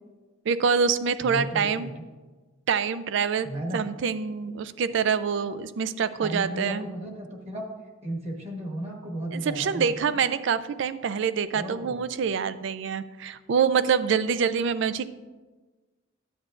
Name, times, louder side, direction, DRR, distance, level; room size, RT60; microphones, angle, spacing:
voice 1, 0.5-1.9 2.7-3.5 3.7-6.9 9.3-15.1, right 6 dB, 60° right, 14 dB, 0.4 m, -26 dB
voice 2, 1.2-1.9 3.4-3.8 6.2-7.6 8.0-10.2 11.5-12.0, right 1 dB, 30° right, 0 dB, 1.2 m, -34 dB
10.0 x 8.5 x 2.5 m, 1.3 s
head